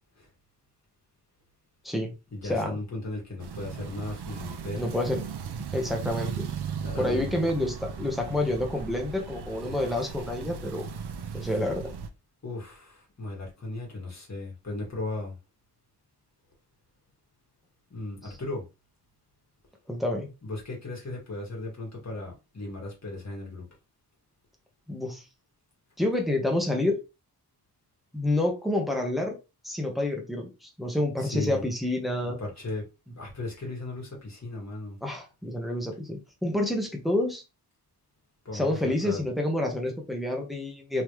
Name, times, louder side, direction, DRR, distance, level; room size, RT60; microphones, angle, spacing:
voice 1, 2.3-4.8 6.8-7.3 11.4-11.5 12.4-15.3 17.9-18.6 20.4-23.6 31.2-31.7 32.2-32.9 33.2-35.0 38.5-39.2, left 2 dB, 45° left, 1.9 m, -36 dB
sound 1, 3.4-12.1, right 7 dB, 80° right, 0.6 m, -37 dB
voice 2, 4.8-5.2 5.7-6.5 7.0-10.9 11.3-11.9 18.2-18.3 19.9-20.3 24.9-25.2 26.0-27.0 28.1-29.4 29.6-32.4 35.0-37.4 38.5-41.0, left 1 dB, ahead, 1.0 m, -28 dB
3.6 x 3.2 x 3.1 m
wide cardioid pair, 125°, 39 cm